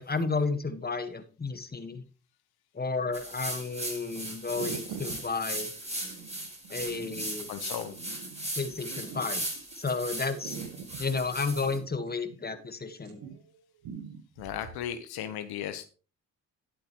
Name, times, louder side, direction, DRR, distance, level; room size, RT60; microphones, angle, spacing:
voice 1, 0.0-2.0 2.7-5.7 6.7-7.5 8.6-9.5 9.7-10.6 11.0-13.2, left 4 dB, 25° left, 9 dB, 1.5 m, -32 dB
sound 1, 3.0-3.5 4.2-4.3 4.5-9.8 10.3-12.7 13.0-13.5 13.8-14.8, right 7 dB, 80° right, 1.5 m, -44 dB
sound 2, 3.1-11.8, right 1 dB, 15° right, 4.6 m, -38 dB
voice 2, 7.5-8.0 14.4-15.9, left 10 dB, 80° left, 9 dB, 1.1 m, -36 dB
11.0 x 8.7 x 3.1 m, 0.35 s
supercardioid pair, 55°, 38 cm